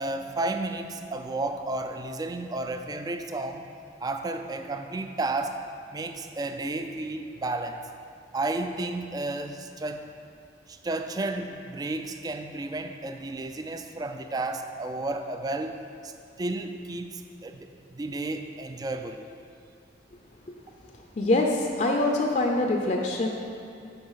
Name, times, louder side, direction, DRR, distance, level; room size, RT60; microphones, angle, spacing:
voice 1, 0.0-3.7 4.0-5.6 5.9-7.9 8.3-10.1 10.7-15.8 16.0-16.1 16.4-19.3, right 2 dB, 20° right, 7 dB, 0.3 m, -32 dB
voice 2, 21.2-23.3, left 2 dB, 40° left, 1 dB, 0.5 m, -24 dB
7.9 x 4.6 x 5.6 m, 2.4 s
head